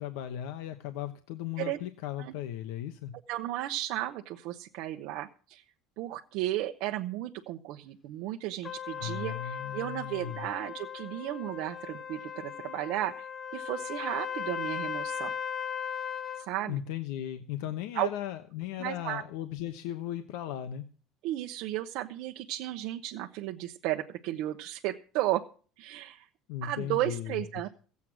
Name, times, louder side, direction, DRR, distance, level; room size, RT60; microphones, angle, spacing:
voice 1, 0.0-3.1 9.0-10.5 16.7-20.9 26.5-27.4, left 11 dB, 75° left, 8 dB, 1.0 m, -37 dB
voice 2, 3.3-5.6 6.0-13.2 13.5-15.3 16.4-16.8 17.9-18.1 18.8-19.2 21.2-25.4 25.8-26.3 26.6-27.7, right 14 dB, 55° right, 3 dB, 0.9 m, -34 dB
Trumpet, 8.6-16.5, left 8 dB, 20° left, 0.9 m, -37 dB
16.0 x 8.4 x 6.2 m, 0.40 s
cardioid pair, 175°, 0 cm